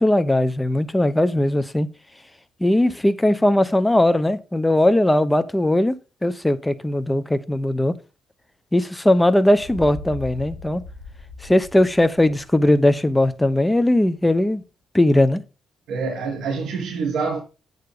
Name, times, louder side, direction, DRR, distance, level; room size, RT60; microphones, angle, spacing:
voice 1, 0.0-1.9 2.6-5.9 6.2-7.9 8.7-10.8 11.4-14.6 14.9-15.4, left 1 dB, 10° left, 0.8 m, -19 dB
sound 1, 9.5-13.4, left 4 dB, 80° left, 1.3 m, -39 dB
voice 2, 15.9-17.4, right 4 dB, 75° right, 3.2 m, -26 dB
8.1 x 6.9 x 3.8 m
cardioid pair, 90°, 0 cm